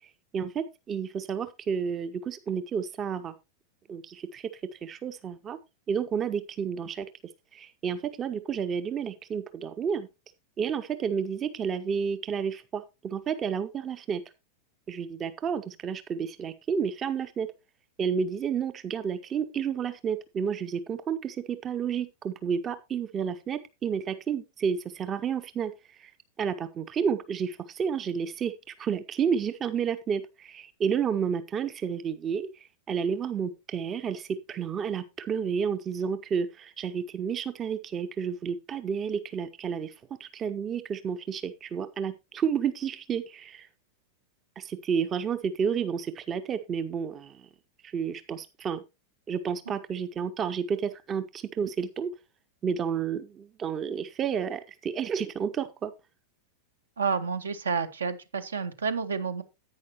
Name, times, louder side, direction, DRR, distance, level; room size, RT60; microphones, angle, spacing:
voice 1, 0.3-3.3 3.9-5.6 5.9-7.1 7.5-10.1 10.6-14.2 14.9-17.5 18.0-25.7 26.0-26.1 26.4-32.5 32.9-39.9 40.2-43.7 44.6-47.5 47.8-48.8 49.3-52.1 52.6-55.9, right 7 dB, 25° right, 0.6 m, -31 dB
voice 2, 57.0-59.4, right 5 dB, 70° right, 1.0 m, -30 dB
10.5 x 9.0 x 2.9 m
figure-of-eight pair, 90°, 0 cm